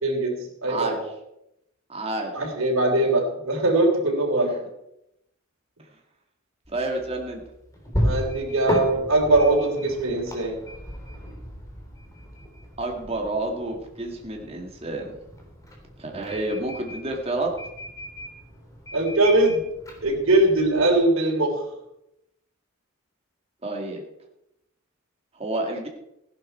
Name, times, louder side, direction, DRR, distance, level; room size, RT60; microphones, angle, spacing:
voice 1, 0.0-1.0 2.3-4.5 8.0-10.6 18.9-19.6 20.0-21.6, right 2 dB, 90° right, 0 dB, 3.5 m, -21 dB
voice 2, 0.7-1.0 1.9-2.3 6.7-7.4 12.8-15.2 16.0-17.5 23.6-24.0 25.3-25.9, right 2 dB, 30° right, 1 dB, 2.2 m, -29 dB
sound 1, 6.6-21.0, equal, 15° left, 3.2 m, -35 dB
15.5 x 11.0 x 4.5 m, 0.84 s
head